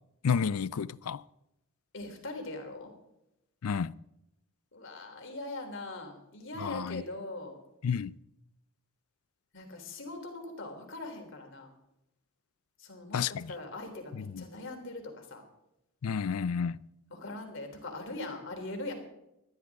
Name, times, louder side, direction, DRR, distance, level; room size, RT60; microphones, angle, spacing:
voice 1, 0.2-1.2 3.6-3.9 6.6-7.0 7.8-8.1 13.1-13.5 14.1-14.4 16.0-16.8, left 6 dB, 85° left, 0.4 m, -31 dB
voice 2, 1.9-2.9 4.7-7.6 9.5-11.7 12.8-15.4 17.1-18.9, left 2 dB, 60° left, 3.5 m, -41 dB
21.0 x 13.5 x 3.6 m
head